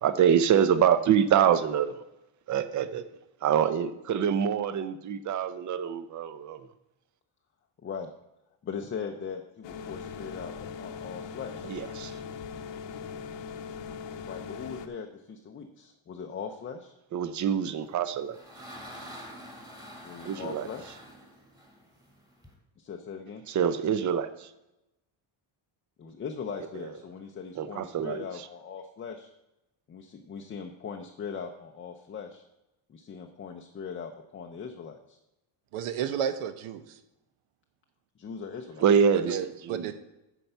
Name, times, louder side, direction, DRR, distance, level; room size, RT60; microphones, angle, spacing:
voice 1, 0.0-2.0 2.5-3.0 3.4-6.7 11.6-12.2 17.1-18.4 20.2-20.7 23.5-24.5 27.6-28.2 38.8-39.9, right 8 dB, 35° right, 13 dB, 0.5 m, -25 dB
voice 2, 8.6-11.7 14.2-16.9 20.0-21.0 22.8-23.4 26.0-29.3 29.9-32.4 32.9-35.2 38.2-38.8, left 6 dB, 25° left, 3 dB, 0.5 m, -40 dB
sound 1, 9.6-14.9, left 6 dB, 60° left, 0.8 m, -40 dB
sound 2, 17.8-22.5, equal, 10° right, 1.8 m, -46 dB
voice 3, 35.7-37.0 39.3-39.9, right 8 dB, 80° right, 11 dB, 1.0 m, -32 dB
9.7 x 4.6 x 6.7 m, 0.91 s
cardioid pair, 160°, 50 cm